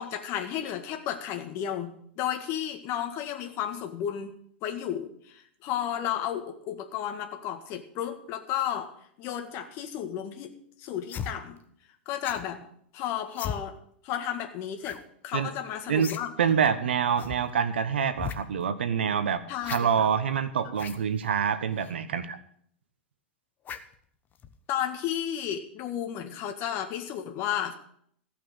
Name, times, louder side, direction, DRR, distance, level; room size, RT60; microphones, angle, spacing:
voice 1, 0.0-4.3 4.6-8.9 9.2-11.6 12.1-12.6 12.9-13.8 14.0-15.0 15.2-16.3 19.5-20.1 24.7-27.7, left 10 dB, 45° left, 6 dB, 1.7 m, -33 dB
sound 1, 11.1-11.3 12.2-12.5 13.3-13.6 14.8-15.0 15.3-15.4 16.0-16.2 16.5-16.6 17.2-17.4 18.1-18.4 19.6-19.8 20.7-21.0 21.8-21.9 23.6-23.9 24.4-24.6, left 8 dB, 30° left, 1.1 m, -36 dB
voice 2, 16.4-19.4 19.7-22.4, right 7 dB, 80° right, 12 dB, 1.3 m, -26 dB
15.5 x 5.9 x 8.9 m, 0.65 s
hypercardioid pair, 100°, 6 cm